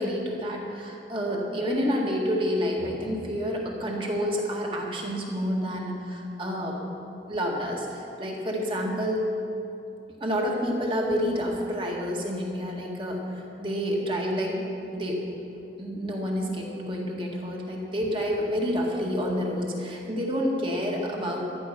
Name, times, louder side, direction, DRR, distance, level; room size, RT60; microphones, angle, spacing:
voice 1, 0.0-6.8 7.3-9.3 10.2-14.7 14.9-15.2 15.8-21.4, equal, 30° right, -1 dB, 2.0 m, -29 dB
14.5 x 11.5 x 5.8 m, 2.8 s
head